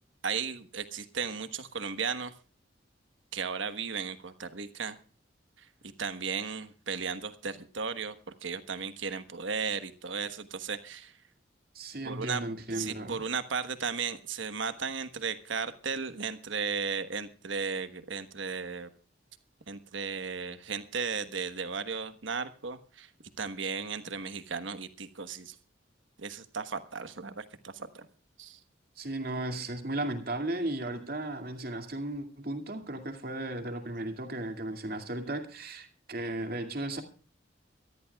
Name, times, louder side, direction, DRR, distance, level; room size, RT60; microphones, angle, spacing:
voice 1, 0.2-2.3 3.3-5.0 5.6-5.7 6.0-8.2 8.4-11.2 12.0-12.4 12.7-18.9 19.7-23.1 23.4-25.6 26.2-28.1 28.4-28.6, right 5 dB, 80° right, 12 dB, 1.3 m, -35 dB
voice 2, 11.7-13.3 29.0-37.0, right 1 dB, 50° right, 7 dB, 2.3 m, -35 dB
24.0 x 13.5 x 2.3 m, 0.37 s
head